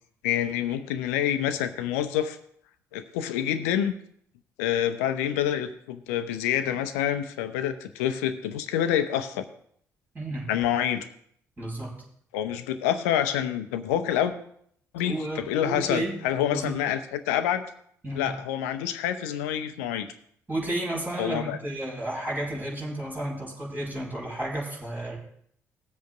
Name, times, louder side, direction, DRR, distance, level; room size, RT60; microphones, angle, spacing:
voice 1, 0.2-2.4 2.9-4.0 4.6-9.5 10.5-11.1 12.3-14.3 14.9-17.6 18.2-20.1 21.2-21.6, left 10 dB, 75° left, 9 dB, 0.8 m, -27 dB
voice 2, 10.1-10.5 11.6-12.0 15.0-16.2 16.5-16.8 18.0-18.3 20.5-25.2, right 1 dB, 25° right, -4 dB, 4.9 m, -32 dB
19.5 x 7.8 x 2.5 m, 0.65 s
figure-of-eight pair, 45°, 8 cm